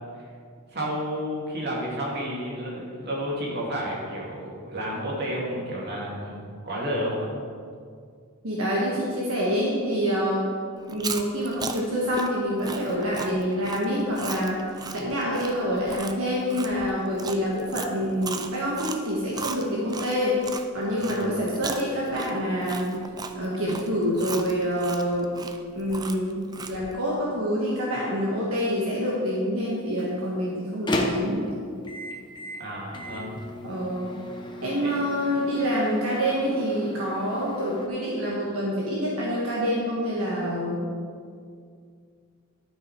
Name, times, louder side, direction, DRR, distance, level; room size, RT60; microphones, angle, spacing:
voice 1, 0.7-7.3 21.0-21.1 32.6-33.4 34.8-34.9, equal, 50° right, -4 dB, 2.4 m, -31 dB
voice 2, 8.4-10.5 10.9-14.6 14.9-20.4 20.7-23.0 23.3-25.3 25.7-26.4 26.7-31.5 33.6-34.1 34.6-40.8, equal, 70° right, -5 dB, 1.4 m, -26 dB
Chewing mastication, 10.8-20.6 21.0-26.9, right 4 dB, 20° right, 0.4 m, -36 dB
Microwave oven, 29.7-37.9, left 1 dB, 20° left, 0.8 m, -35 dB
12.0 x 5.8 x 4.6 m, 2.2 s
head